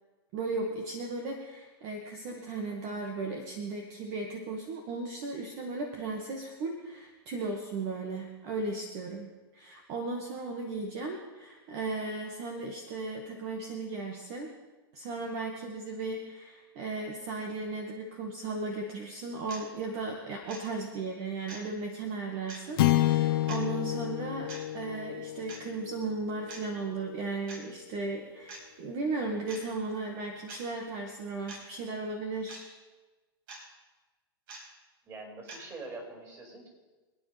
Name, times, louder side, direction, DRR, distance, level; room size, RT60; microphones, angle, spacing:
voice 1, 0.3-14.5 14.9-32.7, right 3 dB, 45° right, 1 dB, 2.0 m, -36 dB
sound 1, 19.5-19.6 20.5-20.6 21.5-21.7 22.5-22.6 23.5-23.6 24.5-24.6 25.5-25.7 26.5-26.6 27.5-27.6 28.5-28.6 29.5-29.6 30.5-30.6 31.5-31.6 32.5-32.6 33.5-33.6 34.5-34.6 35.5-35.6, right 3 dB, 60° right, 5.5 m, -44 dB
sound 2, 22.8-27.2, left 15 dB, 65° left, 1.0 m, -30 dB
voice 2, 35.0-36.7, right 2 dB, 25° right, 0 dB, 5.6 m, -44 dB
26.5 x 9.6 x 3.5 m, 1.2 s
hypercardioid pair, 125°, 13 cm